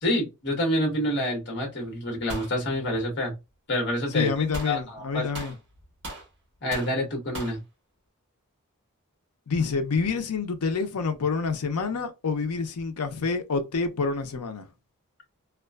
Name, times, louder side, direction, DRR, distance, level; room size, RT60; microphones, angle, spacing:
voice 1, 0.0-3.3 3.7-4.3 4.6-5.3 6.6-7.6, left 1 dB, 50° left, 1.1 m, -27 dB
sound 1, 2.3-2.5 4.5-4.8 5.3-6.3 6.7-6.9 7.3-7.6, right 1 dB, 55° right, 1.1 m, -37 dB
voice 2, 4.1-5.6 9.5-14.7, left 4 dB, 80° left, 0.6 m, -27 dB
2.4 x 2.3 x 2.2 m
head